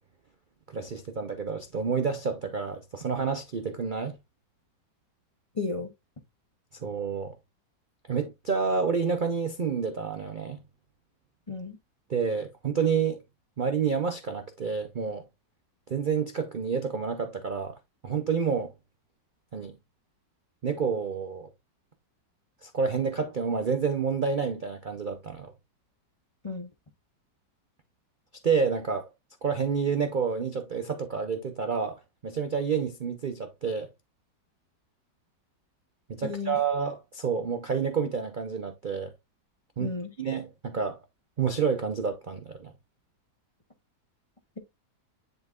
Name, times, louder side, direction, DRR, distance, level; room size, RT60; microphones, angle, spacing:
voice 1, 0.7-4.2 6.8-7.4 8.1-10.6 12.1-13.2 13.6-15.3 15.9-17.8 18.0-18.7 19.5-19.8 20.6-21.5 22.6-25.5 28.4-29.1 29.4-33.9 36.1-39.1 39.8-41.0 41.4-42.7, right 6 dB, 65° right, 0.4 m, -29 dB
voice 2, 5.6-5.9 11.5-11.8 26.4-26.7 36.2-36.6 39.8-40.1, left 4 dB, 40° left, 0.4 m, -33 dB
10.0 x 3.9 x 2.4 m
omnidirectional pair, 1.9 m